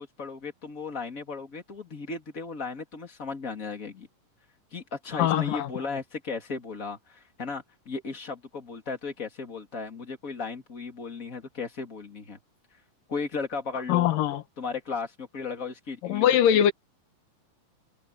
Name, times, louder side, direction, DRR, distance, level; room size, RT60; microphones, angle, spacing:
voice 1, 0.0-4.1 4.7-12.4 13.1-14.1 14.6-16.3 16.5-16.7, left 4 dB, 25° left, 2.9 m, -36 dB
voice 2, 5.1-5.7 13.9-14.4 16.0-16.7, left 10 dB, 80° left, 2.9 m, -22 dB
omnidirectional pair, 3.9 m